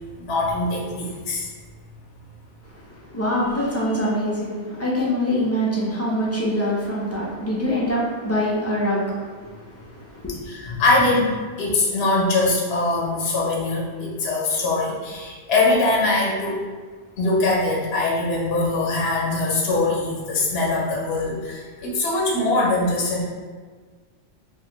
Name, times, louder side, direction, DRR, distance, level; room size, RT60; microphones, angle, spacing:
voice 1, 0.2-1.5 10.5-11.3 11.6-16.6 17.2-23.2, left 2 dB, 60° left, -4 dB, 0.8 m, -22 dB
voice 2, 2.6-10.3, equal, 20° left, -7 dB, 0.4 m, -25 dB
3.4 x 2.5 x 2.9 m, 1.5 s
omnidirectional pair, 1.3 m